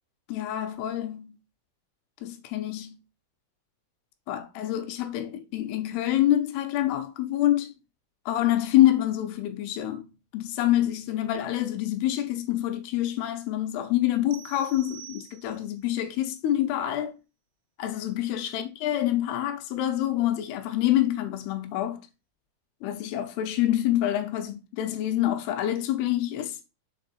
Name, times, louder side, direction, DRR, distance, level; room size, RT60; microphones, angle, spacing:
voice 1, 0.3-1.4 2.2-3.0 4.3-7.8 8.3-10.1 10.3-17.1 17.8-22.0 22.8-26.6, left 13 dB, 80° left, 2.7 m, -26 dB
sound 1, 14.3-15.9, right 13 dB, 90° right, 2.9 m, -47 dB
6.4 x 4.4 x 4.2 m
omnidirectional pair, 4.9 m